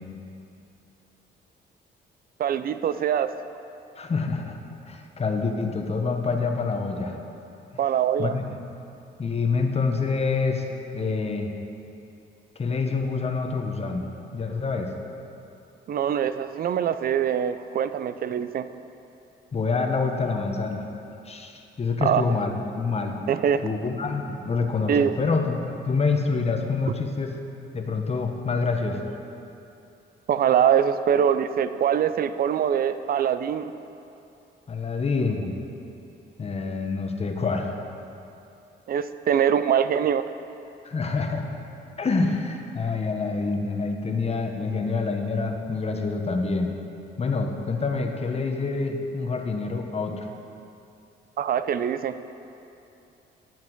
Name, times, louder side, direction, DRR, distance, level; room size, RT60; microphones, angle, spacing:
voice 1, 2.4-3.3 7.8-8.3 15.9-18.7 22.0-22.2 23.3-23.6 24.9-25.1 30.3-33.7 38.9-40.2 51.4-52.1, right 8 dB, 50° right, 12 dB, 0.4 m, -23 dB
voice 2, 4.0-4.6 4.8-7.2 8.2-8.4 9.2-10.7 10.9-11.5 12.6-14.9 19.5-20.9 21.3-23.2 23.6-27.3 27.7-29.1 34.7-35.6 36.4-37.7 40.8-41.5 42.0-46.7 47.2-50.3, left 4 dB, 30° left, 4 dB, 0.9 m, -26 dB
9.9 x 5.9 x 4.5 m, 2.8 s
cardioid pair, 90°, 20 cm